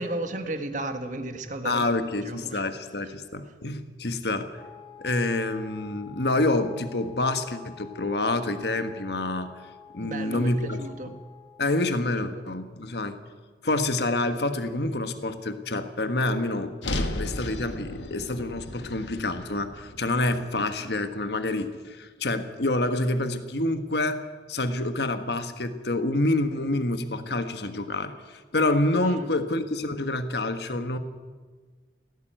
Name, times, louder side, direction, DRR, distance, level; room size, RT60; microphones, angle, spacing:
voice 1, 0.0-2.6 3.0-3.2 3.4-3.5 10.0-11.1 11.8-12.4 29.0-29.3, right 2 dB, 45° right, 7 dB, 1.9 m, -35 dB
voice 2, 1.6-4.6 5.0-9.5 9.9-10.8 11.6-13.2 13.6-24.2 24.5-31.0, left 2 dB, 65° left, 9 dB, 1.4 m, -27 dB
Wind instrument woodwind instrument, 4.5-12.0, left 7 dB, 30° left, 1.6 m, -49 dB
sound 1, 16.8-21.1, left 1 dB, 85° left, 1.8 m, -35 dB
17.5 x 16.0 x 9.1 m, 1.5 s
head